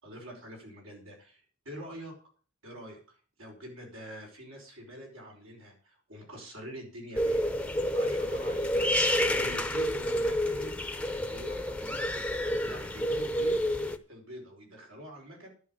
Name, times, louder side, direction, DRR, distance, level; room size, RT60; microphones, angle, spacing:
voice 1, 0.0-2.2 2.6-10.7 11.1-13.6 14.1-15.5, equal, 90° right, 0 dB, 5.3 m, -46 dB
sound 1, 7.2-14.0, equal, 5° left, 0.7 m, -29 dB
11.0 x 6.2 x 9.0 m, 0.42 s
head